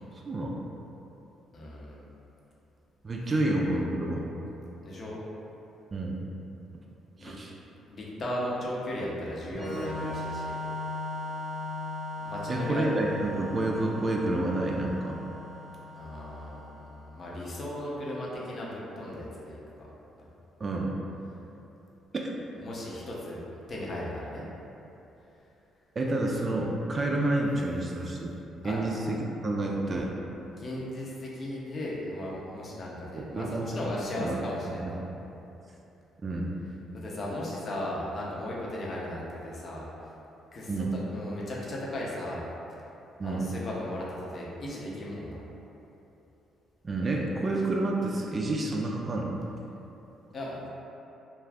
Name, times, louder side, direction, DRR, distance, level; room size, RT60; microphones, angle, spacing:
voice 1, 0.3-0.6 3.0-4.3 5.9-6.2 7.2-7.5 12.5-15.1 20.6-20.9 26.0-28.4 28.6-30.1 33.1-34.3 34.8-34.9 36.2-36.5 40.7-40.9 43.2-43.5 46.8-49.4, right 2 dB, 40° right, -2 dB, 0.3 m, -29 dB
voice 2, 1.5-2.0 4.8-5.2 7.2-7.3 7.9-10.6 12.2-12.9 15.9-19.6 22.6-24.4 28.6-28.8 30.6-35.0 36.9-39.9 40.5-40.7 41.1-42.4 43.2-45.4 50.3-50.7, left 1 dB, 50° left, -5 dB, 0.7 m, -36 dB
Organ, 9.5-17.0, left 2 dB, 15° right, 0.8 m, -38 dB
2.4 x 2.3 x 3.4 m, 3.0 s
supercardioid pair, 60°, 0 cm